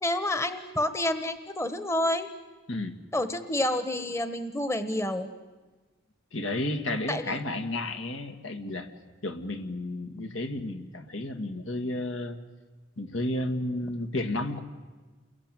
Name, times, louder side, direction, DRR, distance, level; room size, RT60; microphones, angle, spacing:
voice 1, 0.0-2.3 3.1-5.3 7.1-7.3, left 1 dB, 15° left, 10 dB, 1.1 m, -29 dB
voice 2, 2.7-3.0 6.3-8.9 9.2-12.4 13.0-14.6, left 1 dB, 80° left, 8 dB, 2.1 m, -32 dB
29.5 x 22.0 x 9.1 m, 1.3 s
head